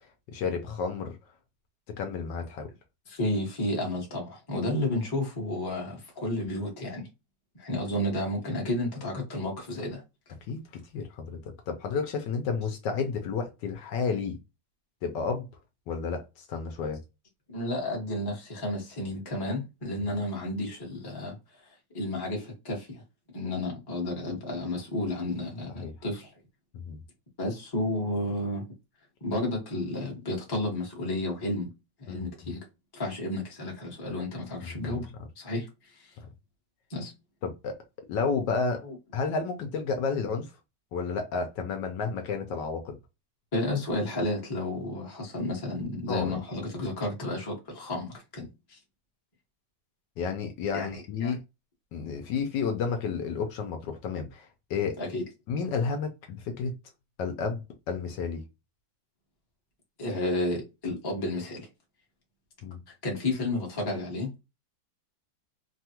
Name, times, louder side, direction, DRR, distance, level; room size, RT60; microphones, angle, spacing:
voice 1, 0.3-1.2 2.0-2.7 10.5-10.6 10.9-11.4 11.7-14.4 15.0-15.5 15.9-17.0 20.0-20.1 25.8-25.9 26.7-27.0 32.1-32.5 34.6-35.0 37.4-37.8 38.1-38.8 39.1-40.5 40.9-42.9 46.1-46.4 50.2-51.4 51.9-55.0 55.5-56.7 57.2-58.4 62.6-62.8, left 5 dB, 75° left, 1.2 m, -31 dB
voice 2, 3.1-7.1 7.6-10.0 17.5-21.4 21.9-23.0 23.3-26.3 27.4-28.6 29.2-31.7 32.0-32.6 32.9-35.1 35.4-35.9 36.9-37.1 38.8-38.9 43.5-48.8 50.7-51.3 55.0-55.2 60.0-61.7 63.0-64.3, left 1 dB, 20° left, 0.7 m, -32 dB
3.3 x 2.3 x 2.8 m
omnidirectional pair, 2.1 m